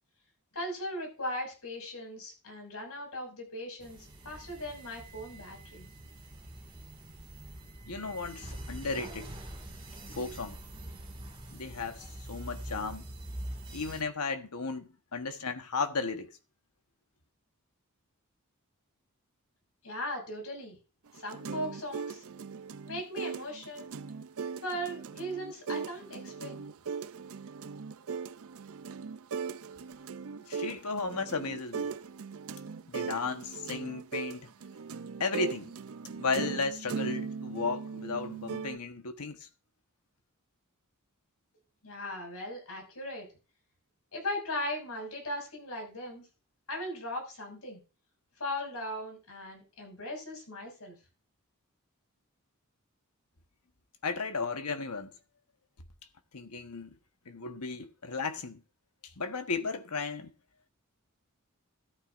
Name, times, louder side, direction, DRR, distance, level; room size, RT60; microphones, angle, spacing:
voice 1, 0.5-5.9 19.8-20.8 21.1-22.2 22.8-23.9 24.6-26.6 41.8-43.3 44.1-46.3 46.7-47.8 48.4-50.9, left 1 dB, 75° left, 6.1 m, -38 dB
sound 1, 3.8-14.0, right 1 dB, 20° right, 2.1 m, -44 dB
voice 2, 7.8-9.3 10.1-10.6 11.5-13.1 13.7-16.3 30.3-31.9 32.9-34.5 35.2-35.7 36.1-39.5 54.0-55.1 56.3-57.0 57.3-58.6 59.0-60.3, left 4 dB, 90° left, 1.3 m, -35 dB
sound 2, 21.1-38.8, right 5 dB, 70° right, 0.5 m, -39 dB
13.5 x 12.5 x 2.6 m
head